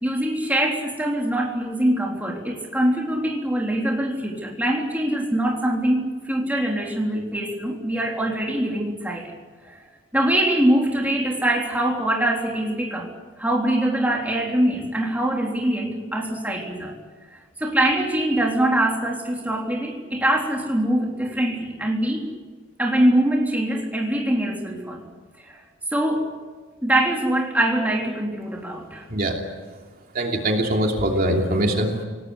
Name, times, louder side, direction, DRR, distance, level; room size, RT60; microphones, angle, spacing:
voice 1, 0.0-9.3 9.7-9.8 10.1-13.1 13.4-16.9 17.3-22.3 22.8-25.1 25.4-25.6 25.9-26.3 26.8-29.1, right 1 dB, 10° right, -1 dB, 3.6 m, -23 dB
voice 2, 30.1-32.0, right 1 dB, 45° right, 1 dB, 3.0 m, -22 dB
27.5 x 19.0 x 9.8 m, 1.4 s
head